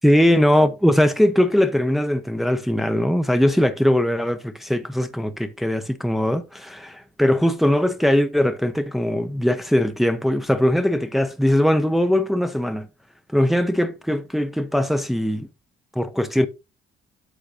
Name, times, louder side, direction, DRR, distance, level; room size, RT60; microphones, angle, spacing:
voice 1, 0.0-12.9 13.3-15.5 15.9-16.5, left 1 dB, ahead, 0.9 m, -20 dB
8.3 x 7.4 x 2.6 m
cardioid pair, 90°, 20 cm